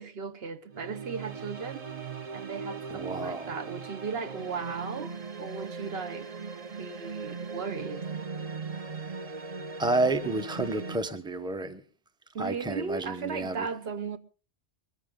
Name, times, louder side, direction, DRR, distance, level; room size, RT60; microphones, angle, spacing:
voice 1, 0.0-1.9 2.3-6.3 6.8-8.0 12.3-14.2, right 5 dB, 60° right, 1.1 m, -36 dB
sound 1, 0.7-11.0, right 5 dB, 35° right, 0.9 m, -39 dB
voice 2, 2.9-3.5 9.8-11.8 12.4-13.7, right 2 dB, 5° right, 0.8 m, -30 dB
22.5 x 14.0 x 3.7 m
omnidirectional pair, 1.2 m